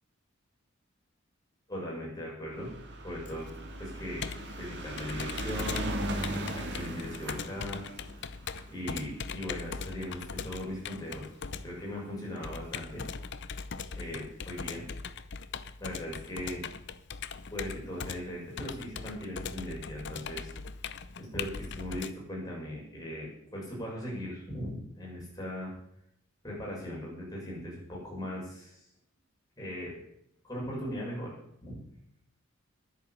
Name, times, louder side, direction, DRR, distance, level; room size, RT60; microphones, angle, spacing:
voice 1, 1.7-2.7 3.0-3.5 3.8-4.3 4.6-5.9 6.5-7.9 8.7-11.3 11.6-13.0 14.0-14.9 15.8-16.6 17.5-20.5 21.2-25.7 26.4-28.8 29.6-29.9 30.4-31.8, equal, 20° left, -4 dB, 7.1 m, -39 dB
sound 1, 2.5-11.0 11.8-11.9 12.1-12.2 12.5-12.6, right 1 dB, 55° right, 2.6 m, -38 dB
Computer keyboard, 3.3-22.1, left 5 dB, 55° left, 0.7 m, -40 dB
11.0 x 10.5 x 8.6 m, 0.73 s
head